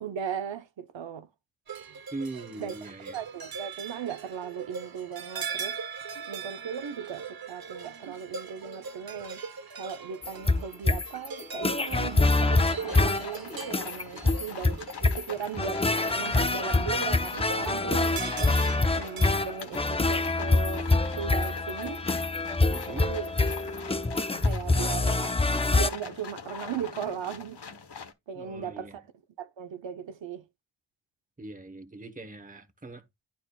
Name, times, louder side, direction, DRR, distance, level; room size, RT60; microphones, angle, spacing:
voice 1, 0.0-1.3 2.6-2.8 3.1-5.8 6.3-9.4 9.8-15.8 16.2-18.6 19.0-22.0 22.9-23.3 24.4-25.3 25.7-27.6 28.3-29.0 29.4-30.4, right 7 dB, 90° right, 0.8 m, -37 dB
sound 1, 1.7-19.4, right 6 dB, 55° right, 0.8 m, -41 dB
voice 2, 2.1-3.2 22.7-23.1 28.3-29.0 31.4-33.0, right 2 dB, 20° right, 1.0 m, -41 dB
sound 2, 10.2-25.9, left 2 dB, 15° left, 0.5 m, -26 dB
sound 3, 11.9-28.1, left 5 dB, 65° left, 1.1 m, -43 dB
11.0 x 4.2 x 2.3 m
wide cardioid pair, 110°, 44 cm